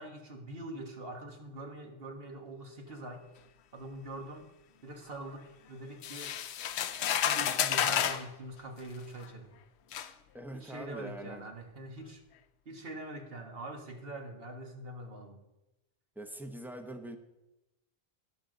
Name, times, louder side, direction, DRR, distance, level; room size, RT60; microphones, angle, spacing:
voice 1, 0.0-3.3 3.7-4.5 4.8-6.4 7.2-9.5 10.5-12.2 12.7-15.4, right 1 dB, 60° right, 4 dB, 1.7 m, -44 dB
sound 1, 6.0-8.3 9.2-9.3 9.9-10.1, left 9 dB, 85° left, 0.9 m, -30 dB
voice 2, 10.3-11.5 16.2-17.2, right 1 dB, ahead, 6 dB, 0.9 m, -43 dB
19.5 x 6.6 x 3.9 m, 0.96 s
omnidirectional pair, 1.1 m